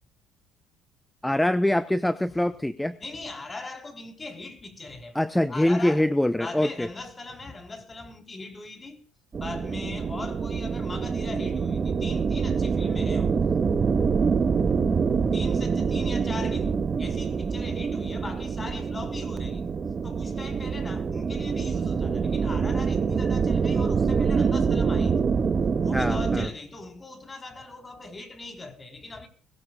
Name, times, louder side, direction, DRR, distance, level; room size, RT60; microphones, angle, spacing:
voice 1, 1.2-3.0 5.1-6.9 25.9-26.5, left 1 dB, 5° left, 0.8 m, -24 dB
voice 2, 3.0-5.2 5.5-6.1 6.4-9.0 9.4-13.4 13.7-14.0 15.3-19.6 20.0-25.2 25.8-29.3, left 3 dB, 25° left, 4.0 m, -40 dB
sound 1, 9.3-26.5, right 5 dB, 35° right, 1.6 m, -25 dB
22.0 x 16.5 x 2.4 m
supercardioid pair, 75°, 0 cm